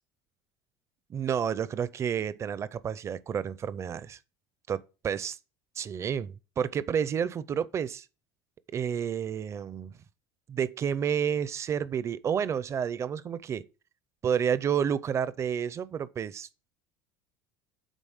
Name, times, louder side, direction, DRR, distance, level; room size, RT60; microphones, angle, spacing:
voice 1, 1.1-4.2 4.7-5.4 5.8-8.1 8.7-9.9 10.5-13.6 14.2-16.7, right 8 dB, 30° right, 0.5 m, -30 dB
9.1 x 3.9 x 6.4 m
cardioid pair, 145°, 10 cm